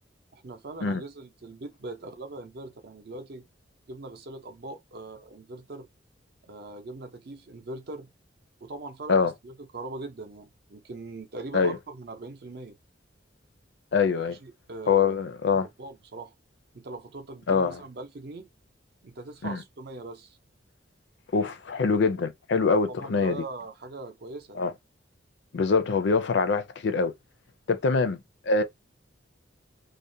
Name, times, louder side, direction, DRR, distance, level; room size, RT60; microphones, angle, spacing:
voice 1, 0.3-3.5 3.9-5.9 6.5-8.1 8.6-12.8 14.3-15.2 15.8-16.3 16.7-18.5 19.0-20.4 22.9-24.7, right 2 dB, 55° right, 0.5 m, -41 dB
voice 2, 13.9-14.4 14.9-15.7 17.5-17.8 19.4-19.6 21.3-23.4 24.6-24.7 25.5-27.1 27.7-28.2 28.5-28.6, left 4 dB, 65° left, 0.4 m, -24 dB
2.4 x 2.1 x 2.6 m
head